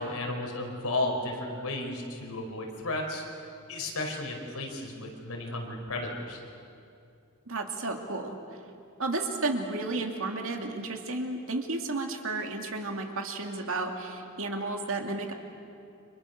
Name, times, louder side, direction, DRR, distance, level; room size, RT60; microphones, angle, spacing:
voice 1, 0.0-3.2 3.7-6.4, left 2 dB, 80° left, 1 dB, 4.6 m, -33 dB
voice 2, 7.5-8.4 9.0-15.3, right 3 dB, 65° right, 3 dB, 2.6 m, -32 dB
30.0 x 26.0 x 6.7 m, 2.5 s
head